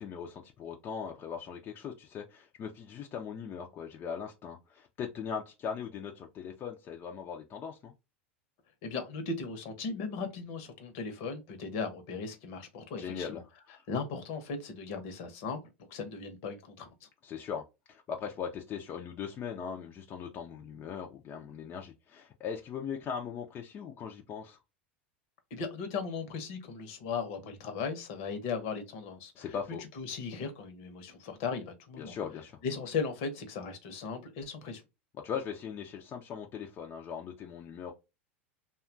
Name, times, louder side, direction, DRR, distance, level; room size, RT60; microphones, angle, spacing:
voice 1, 0.0-7.9 13.0-13.4 13.7-13.8 17.2-17.6 17.9-24.6 29.4-29.8 32.0-32.6 35.2-37.9, left 7 dB, 35° left, 0.5 m, -39 dB
voice 2, 8.8-13.4 13.9-15.6 15.9-16.9 25.5-29.5 29.9-32.1 32.6-34.8, left 5 dB, 60° left, 0.9 m, -37 dB
2.7 x 2.3 x 2.6 m
hypercardioid pair, 95°, 6 cm